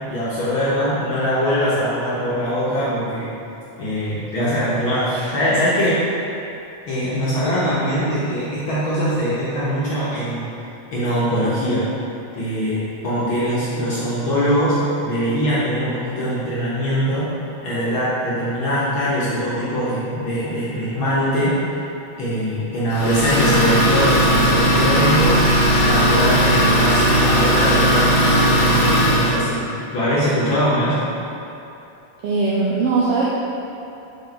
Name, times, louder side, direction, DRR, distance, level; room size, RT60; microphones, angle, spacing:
voice 1, 0.1-3.3 3.8-6.0 6.9-10.4 10.9-11.9 12.3-14.8 15.0-17.3 17.6-21.5 22.2-25.4 25.8-29.6 29.9-31.0, equal, 60° left, -9 dB, 1.4 m, -22 dB
Idling, 22.9-29.4, equal, 45° left, 1.1 m, -17 dB
voice 2, 32.2-33.3, right 4 dB, 80° right, -5 dB, 1.3 m, -19 dB
5.5 x 5.4 x 4.0 m, 2.9 s
omnidirectional pair, 3.4 m